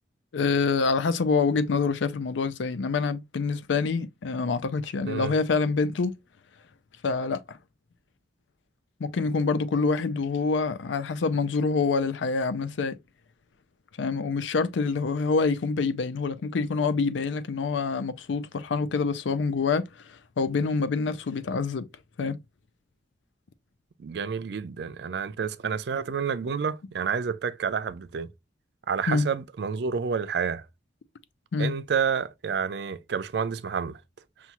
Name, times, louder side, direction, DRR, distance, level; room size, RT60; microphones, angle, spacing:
voice 1, 0.3-6.1 7.0-7.6 9.0-13.0 14.0-21.9 22.2-22.4 29.1-29.3 31.5-31.7, left 4 dB, 90° left, 0.5 m, -26 dB
voice 2, 24.0-28.3 28.9-30.6 31.6-34.0, right 6 dB, 65° right, 0.4 m, -29 dB
5.6 x 2.4 x 2.9 m
head